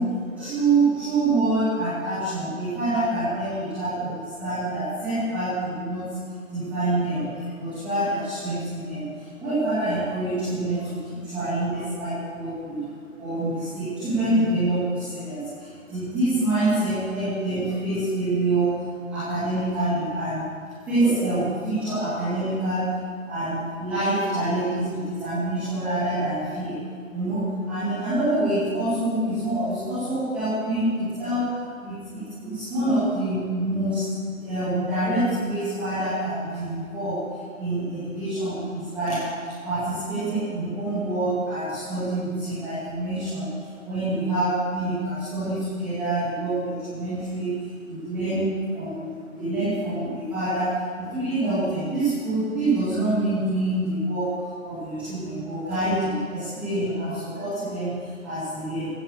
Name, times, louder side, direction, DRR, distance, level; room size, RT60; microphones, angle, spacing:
voice 1, 0.0-6.1 6.5-12.8 13.2-18.7 19.1-20.5 20.9-23.0 23.3-26.8 27.1-37.2 37.6-39.2 39.6-43.5 43.8-48.5 48.7-50.7 51.0-58.9, right 2 dB, 5° right, -17 dB, 2.1 m, -26 dB
14.5 x 12.5 x 6.6 m, 2.1 s
hypercardioid pair, 175°, 41 cm